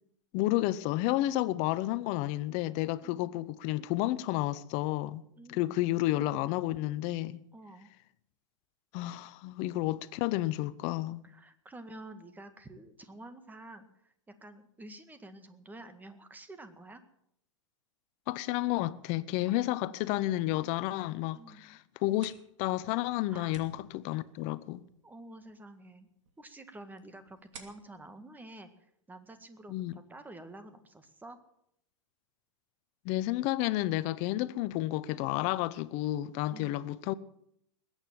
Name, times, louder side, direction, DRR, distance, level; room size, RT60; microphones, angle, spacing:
voice 1, 0.3-5.2 5.5-7.4 8.9-11.2 18.3-24.8 29.7-29.9 33.0-37.1, left 16 dB, 45° left, 0.9 m, -31 dB
voice 2, 5.4-5.7 7.5-7.9 9.4-9.5 11.2-17.0 19.8-20.1 21.3-21.8 23.3-23.6 25.0-26.1 26.4-28.7 29.1-31.4 36.5-36.9, right 1 dB, 10° right, 1.8 m, -49 dB
sound 1, 21.9-29.4, right 5 dB, 75° right, 2.9 m, -58 dB
21.0 x 9.1 x 7.5 m
hypercardioid pair, 105°, 16 cm